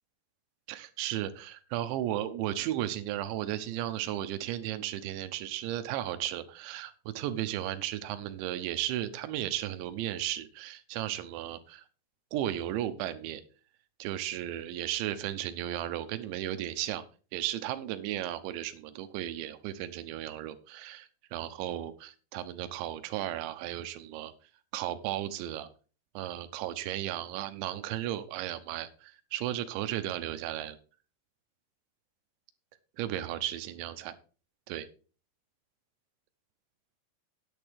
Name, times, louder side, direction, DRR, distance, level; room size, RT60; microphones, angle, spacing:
voice 1, 0.7-11.8 12.3-13.4 14.0-17.0 17.3-24.3 24.7-25.7 26.1-30.8 33.0-34.1 34.7-34.9, right 12 dB, 90° right, 10 dB, 3.2 m, -35 dB
9.7 x 8.9 x 4.7 m, 0.37 s
omnidirectional pair, 5.1 m